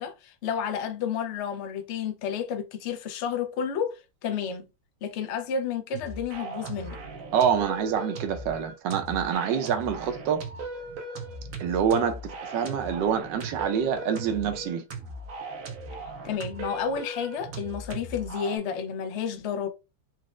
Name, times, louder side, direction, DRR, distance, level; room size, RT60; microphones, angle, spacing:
voice 1, 0.0-4.7 5.0-7.0 16.2-19.7, left 7 dB, 70° left, 0.6 m, -31 dB
sound 1, 5.9-18.6, right 2 dB, 60° right, 0.9 m, -38 dB
voice 2, 7.3-10.4 11.6-14.8, right 7 dB, 80° right, 1.3 m, -26 dB
4.2 x 2.0 x 2.4 m
omnidirectional pair, 1.9 m